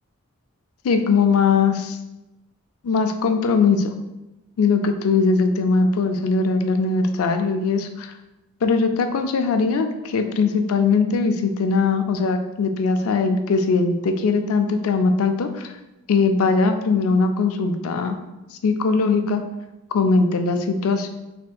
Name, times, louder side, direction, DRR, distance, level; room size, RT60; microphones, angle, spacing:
voice 1, 0.8-2.0 2.8-3.9 4.6-8.1 8.6-15.7 16.1-18.2 18.6-19.4 19.9-21.1, left 4 dB, 80° left, 6 dB, 0.4 m, -20 dB
4.2 x 3.5 x 2.3 m, 0.98 s
head